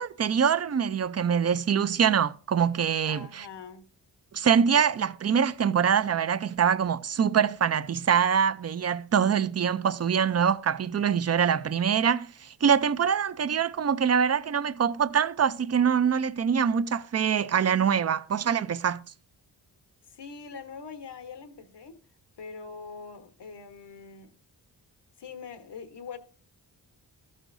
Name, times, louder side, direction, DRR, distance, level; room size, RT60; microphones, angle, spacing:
voice 1, 0.0-3.4 4.3-19.0, right 7 dB, 35° right, 0.6 m, -24 dB
voice 2, 3.1-3.9 20.0-22.0 22.4-24.4 25.2-26.2, left 5 dB, 70° left, 1.3 m, -43 dB
14.0 x 6.4 x 2.7 m
cardioid pair, 45°, 43 cm